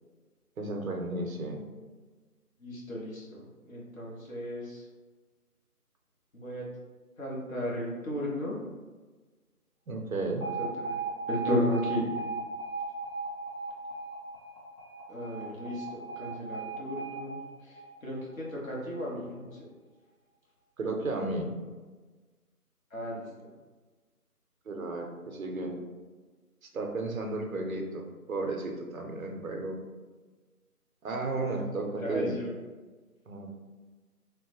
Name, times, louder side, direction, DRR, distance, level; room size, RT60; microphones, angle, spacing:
voice 1, 0.6-1.6 9.9-10.5 20.8-21.6 24.7-25.8 26.7-29.8 31.0-32.3 33.3-33.6, right 2 dB, 60° right, 2 dB, 0.6 m, -33 dB
voice 2, 2.6-4.9 6.3-6.7 7.2-8.6 10.4-11.0 11.3-12.0 15.1-19.7 22.9-23.5 31.4-31.7 32.0-32.5, left 1 dB, 60° left, -4 dB, 1.0 m, -35 dB
Alarm, 10.4-18.5, right 3 dB, 25° left, 1.1 m, -37 dB
3.2 x 2.1 x 2.9 m, 1.3 s
figure-of-eight pair, 170°, 47 cm